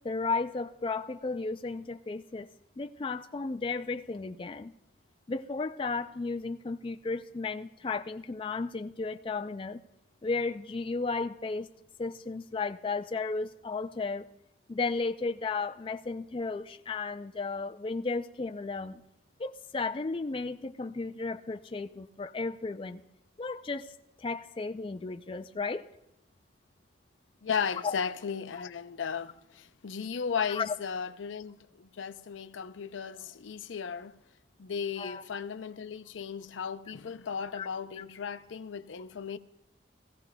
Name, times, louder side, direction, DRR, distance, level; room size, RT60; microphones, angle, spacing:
voice 1, 0.0-2.5 2.8-4.7 5.3-9.8 10.2-11.7 12.0-14.3 14.7-19.0 19.4-23.0 23.4-23.9 24.2-25.9 27.8-27.9 30.5-30.7 35.0-35.2 37.5-37.7 38.0-38.1, left 4 dB, 30° left, 0.4 m, -34 dB
voice 2, 27.4-34.2 34.6-39.4, left 6 dB, 90° left, 0.5 m, -35 dB
19.5 x 15.0 x 2.2 m
head